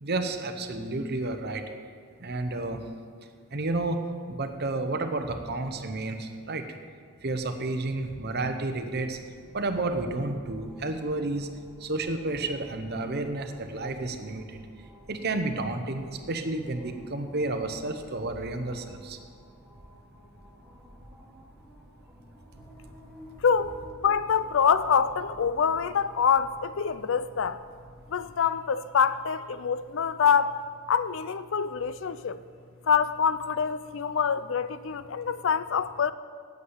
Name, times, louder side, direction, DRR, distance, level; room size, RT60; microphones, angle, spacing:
voice 1, 0.0-1.6 2.2-2.8 3.5-6.6 7.2-9.2 9.5-11.5 11.8-14.6 15.1-19.2, right 2 dB, 50° right, 0.9 m, -31 dB
sound 1, 8.8-28.3, equal, ahead, 1.5 m, -53 dB
voice 2, 23.4-23.8 24.0-27.6 28.1-30.6 30.9-32.4 32.9-36.1, left 6 dB, 60° left, 0.4 m, -25 dB
8.4 x 8.1 x 8.1 m
head